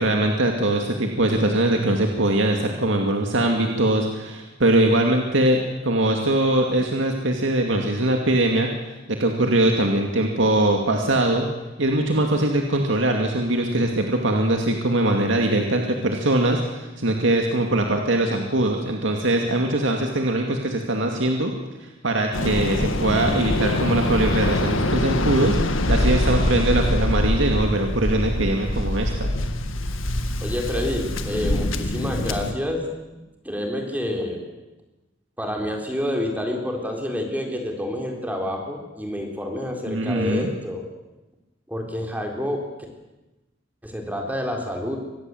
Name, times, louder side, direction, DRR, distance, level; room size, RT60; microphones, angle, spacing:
voice 1, 0.0-11.5 11.8-21.5 21.8-29.3 39.9-40.5, right 1 dB, 70° right, 2 dB, 2.4 m, -22 dB
Waves surf, 22.3-32.5, left 1 dB, 80° left, 1.9 m, -24 dB
voice 2, 30.4-32.8 33.4-34.5 35.4-40.8 41.7-42.6 43.8-45.0, left 1 dB, 10° right, 2 dB, 4.0 m, -28 dB
25.0 x 20.0 x 7.9 m, 1.1 s
head